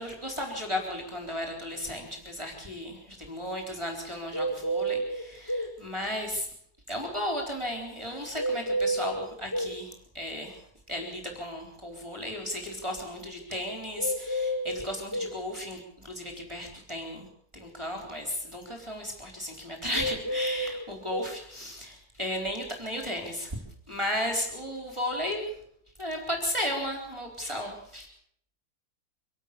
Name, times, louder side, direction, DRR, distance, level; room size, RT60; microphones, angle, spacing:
voice 1, 0.0-6.5 6.9-17.3 17.5-23.6 23.9-25.6 26.0-28.1, left 1 dB, 20° right, 1 dB, 4.1 m, -34 dB
sound 1, 4.3-5.7 8.4-9.8 14.0-15.4 19.9-21.3, right 1 dB, 15° left, 1.1 m, -30 dB
25.0 x 13.0 x 8.5 m, 0.69 s
omnidirectional pair, 1.6 m